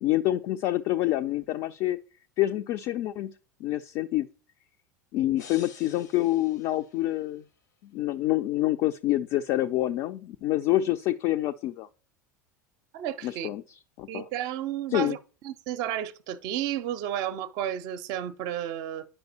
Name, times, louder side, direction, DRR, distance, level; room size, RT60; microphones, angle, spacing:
voice 1, 0.0-2.0 2.4-3.3 3.6-4.3 5.1-7.4 7.9-11.9 13.2-13.6 14.0-14.3 14.9-15.2, left 15 dB, 45° left, 0.4 m, -27 dB
sound 1, 5.4-7.5, left 6 dB, 70° left, 0.7 m, -50 dB
voice 2, 12.9-13.5 14.1-15.2 15.4-19.1, right 11 dB, 45° right, 0.5 m, -32 dB
9.8 x 5.2 x 2.9 m
figure-of-eight pair, 75°, 10 cm